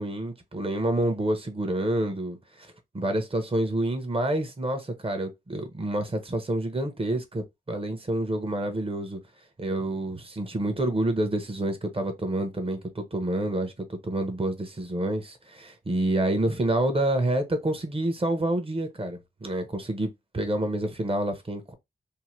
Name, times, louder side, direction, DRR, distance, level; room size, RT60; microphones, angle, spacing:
voice 1, 0.0-2.7 2.9-9.2 9.6-21.7, right 1 dB, 30° right, 0.8 m, -28 dB
2.8 x 2.1 x 3.1 m
wide cardioid pair, 65°, 18 cm